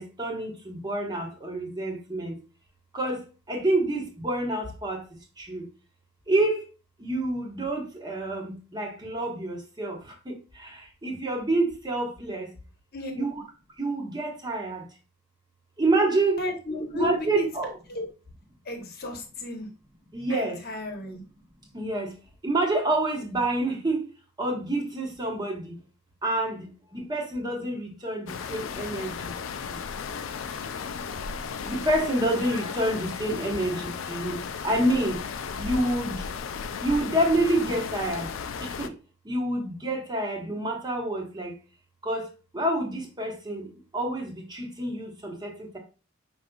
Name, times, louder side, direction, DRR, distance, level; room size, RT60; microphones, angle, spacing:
voice 1, 0.0-2.4 2.9-3.2 3.5-5.0 5.4-5.7 6.3-6.6 7.0-12.5 13.1-13.3 13.8-14.8 15.8-16.4 16.9-17.7 20.1-20.6 21.7-22.1 22.4-24.1 24.4-25.8 26.2-29.2 29.7-29.8 31.6-35.2 35.6-36.2 36.8-38.3 38.6-38.9 39.2-41.6 42.0-42.3 42.5-45.8, right 1 dB, 20° right, 0.9 m, -28 dB
voice 2, 12.9-13.2 16.4-17.5 17.9-18.1 18.6-19.7 20.3-21.2, left 2 dB, 50° left, 0.9 m, -33 dB
sound 1, 28.3-38.9, left 6 dB, 70° left, 0.4 m, -35 dB
4.8 x 3.9 x 2.3 m
head